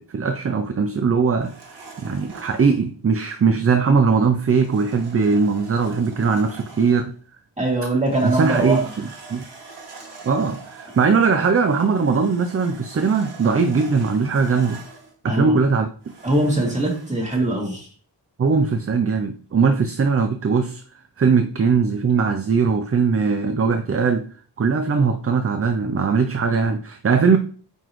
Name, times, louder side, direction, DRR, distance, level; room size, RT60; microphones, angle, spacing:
voice 1, 0.1-1.5 2.0-7.1 8.2-8.8 9.3-9.4 10.2-14.8 15.2-15.9 18.4-20.8 21.2-24.3 24.6-27.4, right 5 dB, 35° right, 0.5 m, -20 dB
sound 1, 1.4-2.8 4.5-7.1 7.9-15.1 16.0-17.3, right 4 dB, 90° right, 1.6 m, -43 dB
voice 2, 7.6-8.9 15.2-15.6 16.2-17.9, right 2 dB, 15° right, 2.4 m, -22 dB
9.2 x 3.9 x 3.1 m
wide cardioid pair, 100°, 40 cm